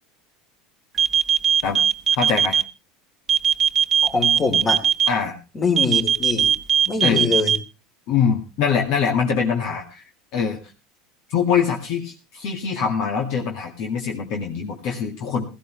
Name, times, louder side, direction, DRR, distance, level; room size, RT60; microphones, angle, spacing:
sound 1, 1.0-2.6 3.3-5.1 5.8-7.6, right 8 dB, 35° right, 1.0 m, -18 dB
voice 1, 2.2-2.6 5.1-5.4 7.0-7.3 8.1-10.0 10.3-10.6 11.3-15.4, left 6 dB, 60° left, 2 dB, 2.1 m, -23 dB
voice 2, 4.0-4.8 5.6-6.5 6.9-7.5, left 4 dB, 30° left, 3 dB, 3.5 m, -23 dB
16.5 x 14.5 x 3.2 m, 0.30 s
supercardioid pair, 100°, 0 cm